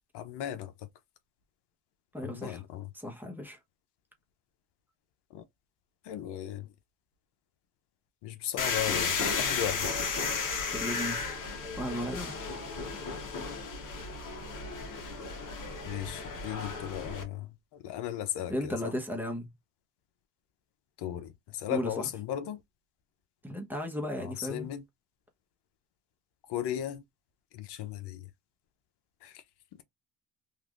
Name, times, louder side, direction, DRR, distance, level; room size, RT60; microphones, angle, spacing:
voice 1, 0.1-0.9 2.2-2.9 5.3-5.4 6.0-6.7 8.2-10.1 15.8-19.0 21.0-22.6 24.2-24.8 26.5-27.0 27.5-28.3 29.2-29.4 29.7-29.8, left 11 dB, 80° left, 0.7 m, -36 dB
voice 2, 2.1-2.6 2.9-3.6 10.7-11.3 11.8-12.3 18.5-19.5 21.7-22.1 23.4-24.7, equal, 5° right, 1.0 m, -35 dB
sound 1, 8.6-17.2, left 5 dB, 50° left, 1.1 m, -34 dB
3.2 x 2.5 x 2.4 m
cardioid pair, 90°, 40 cm